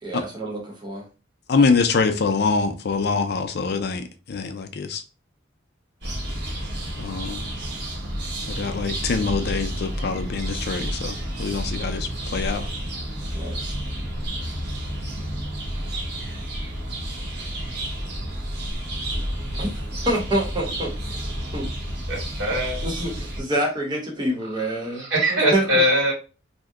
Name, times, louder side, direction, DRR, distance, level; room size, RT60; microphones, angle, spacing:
voice 1, 0.0-1.1 13.3-13.7 19.6-19.7 20.1-20.9 21.5-21.7 22.8-25.8, right 1 dB, 25° right, 0.9 m, -27 dB
voice 2, 1.5-5.0 7.0-7.4 8.5-12.7, left 4 dB, 55° left, 0.4 m, -24 dB
sound 1, 6.0-23.4, right 1 dB, 60° right, 1.0 m, -30 dB
voice 3, 22.1-22.8 25.0-26.1, equal, 80° right, 1.6 m, -21 dB
2.7 x 2.1 x 3.5 m
head